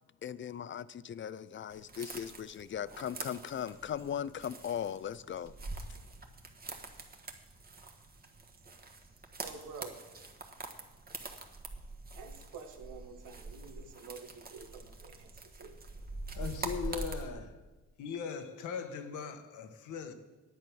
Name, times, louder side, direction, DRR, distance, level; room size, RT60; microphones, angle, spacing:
voice 1, 0.2-5.5, left 9 dB, 40° left, 0.4 m, -38 dB
sound 1, 1.7-17.3, right 3 dB, 30° right, 1.4 m, -45 dB
voice 2, 9.4-10.0 12.1-15.8, right 5 dB, 85° right, 1.5 m, -49 dB
voice 3, 16.3-17.6 18.0-20.1, left 6 dB, 80° left, 1.3 m, -39 dB
10.5 x 8.7 x 6.1 m
cardioid pair, 90°, 30 cm